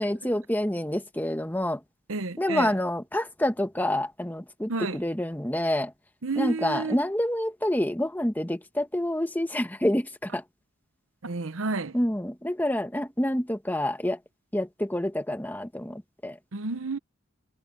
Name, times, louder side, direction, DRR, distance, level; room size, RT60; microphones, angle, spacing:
voice 1, 0.0-1.8 2.4-5.9 6.4-10.4 11.9-14.2 14.5-16.3, left 1 dB, 10° left, 1.3 m, -27 dB
voice 2, 2.1-2.8 4.7-5.0 6.2-7.0 11.2-12.0 16.5-17.0, right 3 dB, 85° right, 0.9 m, -31 dB
head